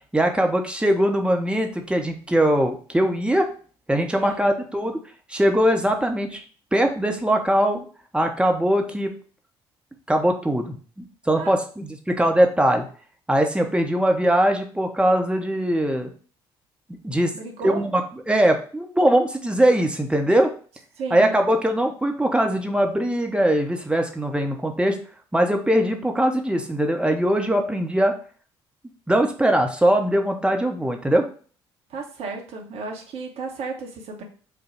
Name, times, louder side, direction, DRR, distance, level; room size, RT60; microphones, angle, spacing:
voice 1, 0.1-3.5 3.9-5.0 5.3-6.4 6.7-7.8 8.1-9.1 10.1-12.8 13.3-16.1 17.0-17.3 17.6-18.0 18.3-20.5 21.1-25.0 25.3-28.1 29.1-31.3, right 1 dB, 10° right, 3 dB, 0.8 m, -21 dB
voice 2, 4.2-4.5 11.3-11.5 17.3-17.8 21.0-21.4 31.9-34.2, right 4 dB, 50° right, 2 dB, 0.9 m, -33 dB
5.1 x 2.2 x 4.3 m, 0.41 s
figure-of-eight pair, 50°, 13 cm